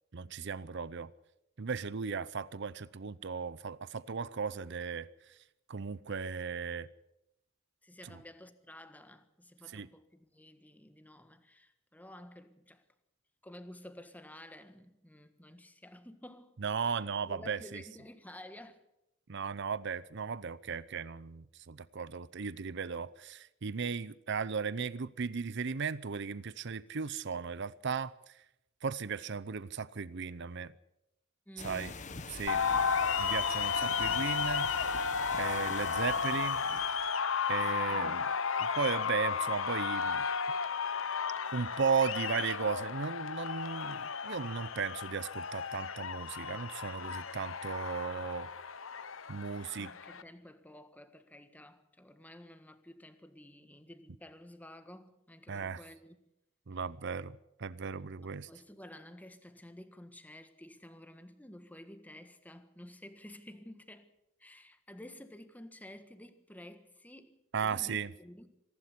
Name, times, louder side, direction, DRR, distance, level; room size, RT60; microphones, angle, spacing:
voice 1, 0.1-1.1 1.6-5.1 5.7-6.9 8.0-8.1 9.7-9.9 16.6-17.8 19.3-28.1 28.8-30.7 31.6-31.9 32.3-32.6 33.2-34.7 35.4-36.6 37.5-38.3 38.6-40.3 41.5-48.5 49.3-49.9 55.5-55.8 56.7-58.5 67.5-68.1, right 5 dB, 60° right, 0.7 m, -36 dB
voice 2, 7.8-12.8 13.4-18.8 31.5-32.1 32.5-32.9 37.5-38.3 49.5-56.2 58.2-64.1 64.4-67.3 67.6-68.5, left 1 dB, 10° left, 1.5 m, -52 dB
sound 1, 31.6-37.1, left 4 dB, 40° left, 1.4 m, -45 dB
sound 2, 32.5-50.2, left 6 dB, 80° left, 1.0 m, -33 dB
25.5 x 12.0 x 8.4 m
head